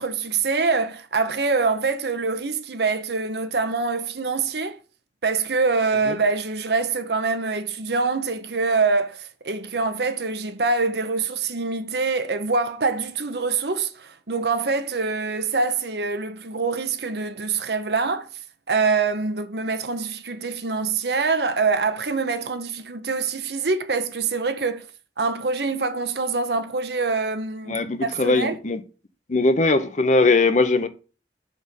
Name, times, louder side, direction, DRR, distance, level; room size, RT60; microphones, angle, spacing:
voice 1, 0.0-4.8 5.2-18.3 18.7-24.9 25.2-28.6, right 4 dB, 65° right, 0.9 m, -25 dB
voice 2, 27.7-28.8 29.3-30.9, left 3 dB, 40° left, 0.7 m, -20 dB
6.2 x 4.4 x 5.2 m
head